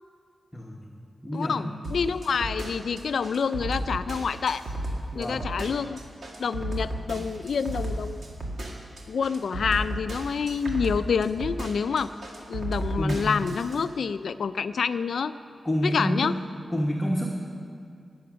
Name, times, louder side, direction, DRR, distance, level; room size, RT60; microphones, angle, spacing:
voice 1, 0.5-0.8 1.2-1.7 5.1-5.5 13.0-13.3 15.6-16.3 16.7-17.3, equal, 15° left, -2 dB, 1.2 m, -28 dB
voice 2, 1.3-4.6 5.1-6.0 6.4-8.3 9.1-12.1 12.5-15.3 15.8-16.3, left 6 dB, 75° left, 12 dB, 0.4 m, -27 dB
sound 1, 1.8-13.8, right 1 dB, 60° right, 2.0 m, -33 dB
20.0 x 7.8 x 6.2 m, 2.3 s
wide cardioid pair, 155°, 0 cm